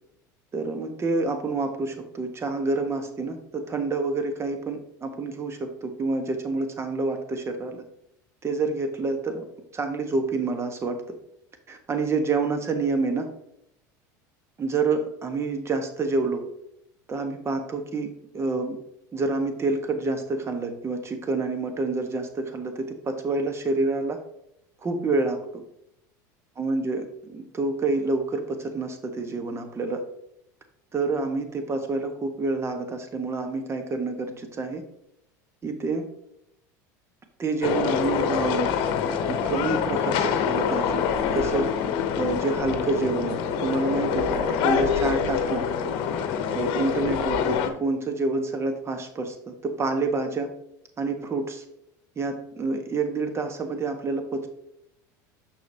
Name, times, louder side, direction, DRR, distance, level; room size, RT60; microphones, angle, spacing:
voice 1, 0.5-7.8 8.4-9.4 9.7-11.0 11.7-13.3 14.6-16.4 17.1-18.8 19.1-24.2 24.8-25.6 26.6-30.0 30.9-34.8 35.6-36.0 37.4-38.7 39.3-41.1 41.3-41.7 42.2-45.7 46.5-50.5 51.0-51.6 52.2-54.5, right 3 dB, 25° right, 6 dB, 1.3 m, -28 dB
sound 1, 37.6-47.7, left 7 dB, 60° left, 0.9 m, -25 dB
6.7 x 6.3 x 2.8 m, 0.77 s
hypercardioid pair, 95°, 10 cm